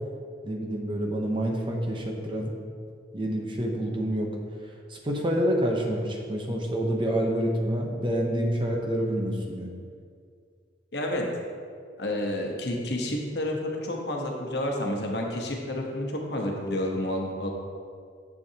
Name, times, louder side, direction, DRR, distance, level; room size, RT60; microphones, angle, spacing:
voice 1, 0.4-2.5 3.1-4.3 4.9-9.7, equal, 25° right, 0 dB, 0.8 m, -27 dB
voice 2, 10.9-11.3 12.0-17.5, left 1 dB, 60° left, 0 dB, 1.1 m, -30 dB
9.6 x 7.0 x 2.9 m, 2.2 s
head